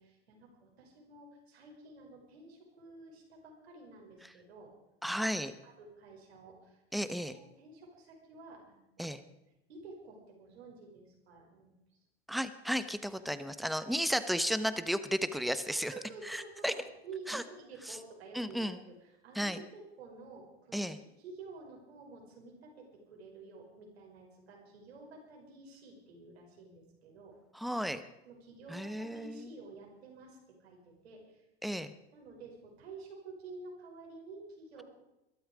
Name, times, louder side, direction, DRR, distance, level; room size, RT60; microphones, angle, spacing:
voice 1, 0.0-4.7 5.6-7.0 7.3-9.2 9.7-11.8 13.9-14.0 15.7-20.9 21.2-27.4 28.2-31.8 32.1-34.8, right 3 dB, 75° right, 0 dB, 5.8 m, -51 dB
voice 2, 5.0-5.5 6.9-7.3 9.0-9.2 12.3-15.9 16.2-16.7 17.3-17.4 18.3-18.8 19.3-19.6 20.7-21.0 27.5-28.0 28.7-29.5 31.6-31.9, equal, ahead, 12 dB, 1.1 m, -33 dB
22.0 x 12.5 x 5.1 m, 0.93 s
hypercardioid pair, 85°, 32 cm